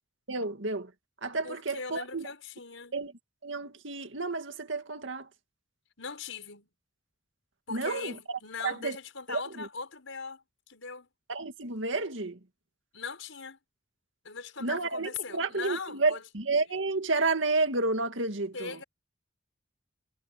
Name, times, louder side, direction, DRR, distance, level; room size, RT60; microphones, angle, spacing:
voice 1, 0.3-0.9 1.2-2.3 2.9-3.1 3.4-5.3 7.7-9.0 9.3-9.7 11.3-12.4 14.6-18.8, right 3 dB, 70° right, 2.2 m, -31 dB
voice 2, 1.4-3.0 6.0-6.7 7.7-11.1 12.9-13.6 14.2-16.2 18.5-18.8, left 5 dB, 90° left, 5.2 m, -40 dB
head